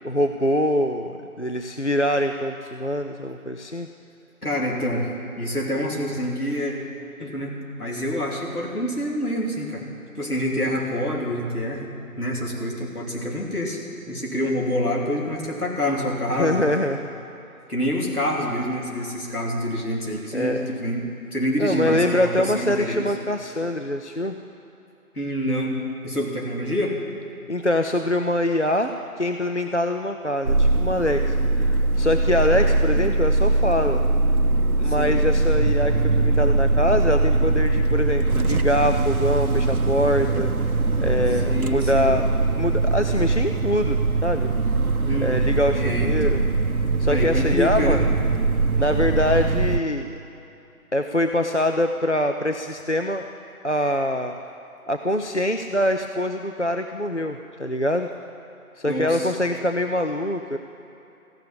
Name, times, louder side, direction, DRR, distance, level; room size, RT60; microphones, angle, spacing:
voice 1, 0.0-3.9 16.3-17.1 20.3-20.7 21.6-24.4 27.5-34.0 34.8-40.7 41.0-42.3 42.6-44.5 45.2-46.4 47.0-48.0 48.8-50.2 50.9-53.3 53.6-54.3 54.9-58.1 58.8-60.6, left 1 dB, 50° left, 5 dB, 0.5 m, -24 dB
voice 2, 4.4-5.1 5.4-6.7 7.2-9.9 10.1-11.9 12.2-13.8 14.1-16.6 17.7-23.1 25.1-27.0 32.5-33.1 34.8-35.2 41.4-42.2 45.0-45.5 45.8-46.4 47.1-48.0 58.9-59.3, equal, 75° left, -2 dB, 3.2 m, -27 dB
sound 1, 30.4-49.8, right 3 dB, 70° right, 0.8 m, -21 dB
14.5 x 6.9 x 9.6 m, 2.8 s
figure-of-eight pair, 180°, 45 cm